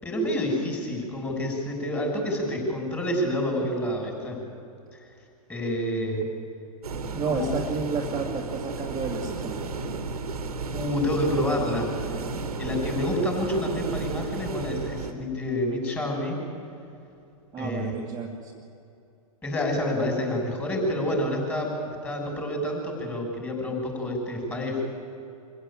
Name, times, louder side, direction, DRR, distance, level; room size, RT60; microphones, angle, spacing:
voice 1, 0.0-4.4 5.5-6.3 7.3-7.5 10.7-11.9 12.6-16.4 17.6-17.9 19.4-21.7 22.0-24.8, left 1 dB, 10° left, 0 dB, 6.6 m, -28 dB
sound 1, 6.8-15.1, right 4 dB, 85° right, 2.2 m, -33 dB
voice 2, 7.1-10.1 17.5-18.6, right 4 dB, 20° right, -1 dB, 2.2 m, -31 dB
25.0 x 15.5 x 8.9 m, 2.6 s
hypercardioid pair, 115°, 19 cm